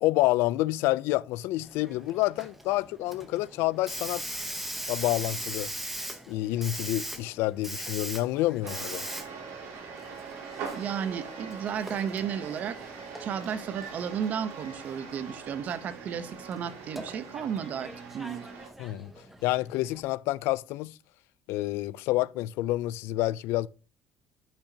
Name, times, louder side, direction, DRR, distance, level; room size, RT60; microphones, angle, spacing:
voice 1, 0.0-4.4 4.9-5.7 6.3-9.0 18.8-19.1 19.4-21.0 21.5-23.7, left 17 dB, 70° left, 0.4 m, -28 dB
Hiss, 1.6-20.0, right 1 dB, 5° right, 0.8 m, -41 dB
sound 1, 8.6-18.7, right 5 dB, 65° right, 2.8 m, -42 dB
voice 2, 10.7-12.8 13.2-18.5, right 8 dB, 40° right, 0.8 m, -33 dB
12.0 x 5.9 x 2.8 m
cardioid pair, 165°, 4 cm